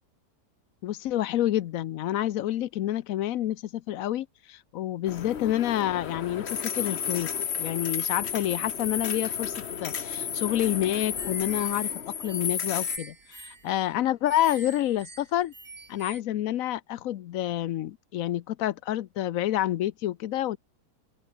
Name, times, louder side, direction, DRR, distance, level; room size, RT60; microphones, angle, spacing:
voice 1, 0.8-7.3 7.6-9.5 9.8-11.9 12.2-15.5 15.9-20.6, left 13 dB, 65° left, 0.9 m, -28 dB
sound 1, 5.1-13.0, left 7 dB, 45° left, 1.2 m, -32 dB
sound 2, 11.2-16.2, right 4 dB, 50° right, 3.4 m, -46 dB
open air
omnidirectional pair, 1.8 m